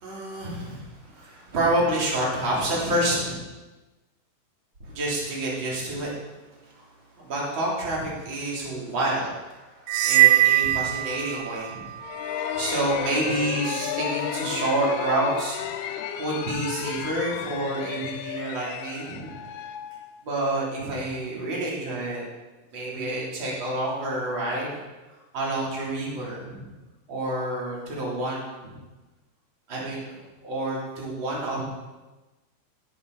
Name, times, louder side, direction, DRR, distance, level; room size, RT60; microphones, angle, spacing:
voice 1, 0.0-3.3 4.8-6.1 6.7-6.9 7.2-11.9 12.5-15.6 16.2-19.4 20.2-22.2 22.7-24.8 25.3-26.7 27.1-28.8 29.7-30.1 30.4-31.7, right 1 dB, 30° right, -5 dB, 3.5 m, -28 dB
sound 1, 9.9-11.7, right 15 dB, 85° right, 2.9 m, -20 dB
sound 2, 12.0-20.7, left 9 dB, 80° left, 2.5 m, -33 dB
16.5 x 9.9 x 4.1 m, 1.1 s
omnidirectional pair, 5.0 m